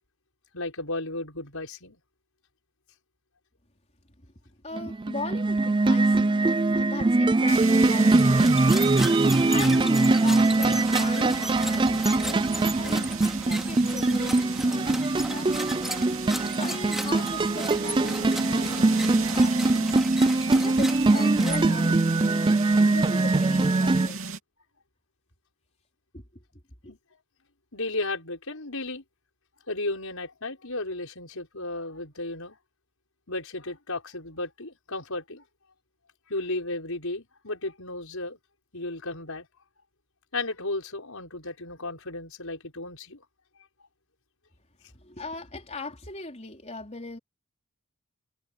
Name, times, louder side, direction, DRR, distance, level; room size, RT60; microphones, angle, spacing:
voice 1, 0.5-2.0 26.8-27.0 27.7-29.0 29.7-32.6 33.3-35.4 36.3-38.4 38.7-39.5 40.3-43.2, left 2 dB, 70° left, 6.2 m, -34 dB
voice 2, 4.6-6.4 6.7-8.6 8.9-15.7 16.1-19.9 20.6-22.4 22.8-24.2 26.1-26.2 26.8-26.9 44.9-47.2, left 2 dB, 30° left, 4.5 m, -39 dB
sound 1, 4.7-24.1, right 2 dB, 20° right, 0.4 m, -22 dB
sound 2, 7.5-24.4, right 4 dB, 65° right, 3.2 m, -36 dB
sound 3, 8.1-22.0, equal, ahead, 2.6 m, -37 dB
head